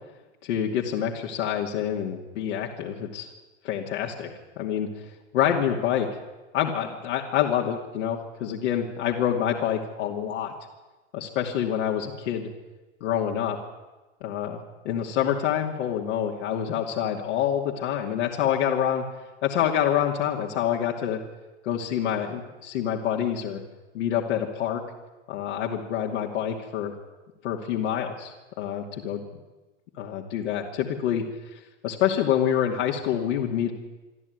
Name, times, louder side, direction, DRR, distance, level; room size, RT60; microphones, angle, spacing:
voice 1, 0.4-3.3 3.6-4.9 5.3-6.1 6.5-10.5 11.1-12.5 13.0-13.6 14.2-19.0 19.4-21.2 21.6-23.6 23.9-24.8 25.3-26.9 27.4-29.2 30.0-31.2 31.8-33.7, left 9 dB, 70° left, 0 dB, 2.7 m, -27 dB
25.0 x 13.0 x 9.6 m, 1.2 s
hypercardioid pair, 120°, 37 cm